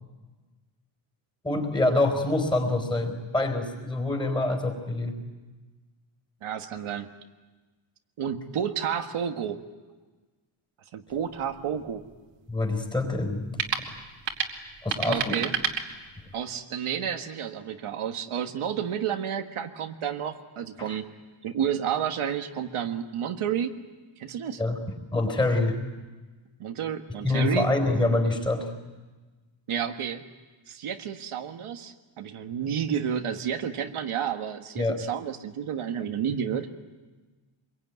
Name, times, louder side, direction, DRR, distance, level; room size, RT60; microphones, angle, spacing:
voice 1, 1.4-5.2 12.5-13.5 14.8-15.5 20.8-21.0 24.6-25.8 27.1-28.7 34.8-35.0, left 2 dB, 10° left, 5 dB, 4.4 m, -26 dB
voice 2, 6.4-7.2 8.2-9.6 10.9-12.0 15.0-15.5 16.3-21.0 21.4-23.7 24.2-24.6 26.6-27.7 29.7-30.2 30.7-36.7, right 8 dB, 75° right, 5 dB, 1.7 m, -31 dB
sound 1, 11.1-16.5, right 7 dB, 60° right, 2.6 m, -33 dB
26.0 x 22.5 x 9.4 m, 1.3 s
wide cardioid pair, 180°, 50 cm